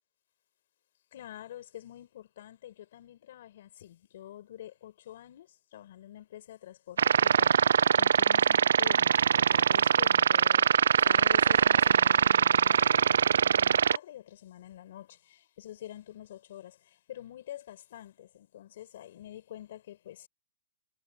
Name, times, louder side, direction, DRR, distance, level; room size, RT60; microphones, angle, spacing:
voice 1, 1.1-20.3, left 12 dB, 50° left, 5.7 m, -47 dB
sound 1, 7.0-14.0, right 7 dB, 85° right, 0.3 m, -23 dB
hypercardioid pair, 170°, 0 cm